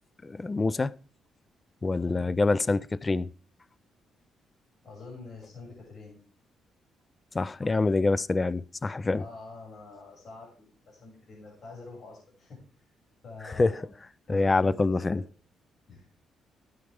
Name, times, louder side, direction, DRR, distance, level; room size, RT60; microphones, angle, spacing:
voice 1, 0.2-0.9 1.8-3.3 7.3-9.2 13.4-13.7 14.3-15.2, left 3 dB, 25° left, 0.4 m, -26 dB
voice 2, 4.8-6.2 9.1-12.6 13.2-13.9 14.3-15.2 15.9-16.1, left 3 dB, 55° left, 6.2 m, -46 dB
13.0 x 9.1 x 3.5 m
cardioid pair, 90°, 0 cm